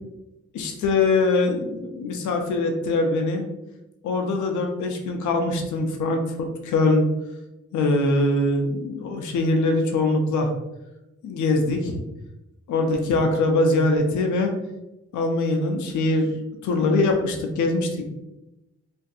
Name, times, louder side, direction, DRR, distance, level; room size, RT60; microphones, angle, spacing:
voice 1, 0.5-3.5 4.0-7.1 7.7-10.5 11.2-11.9 12.7-14.5 15.1-16.3 16.6-18.2, left 2 dB, 80° left, 3 dB, 0.5 m, -22 dB
2.5 x 2.3 x 2.5 m, 0.95 s
cardioid pair, 70°, 29 cm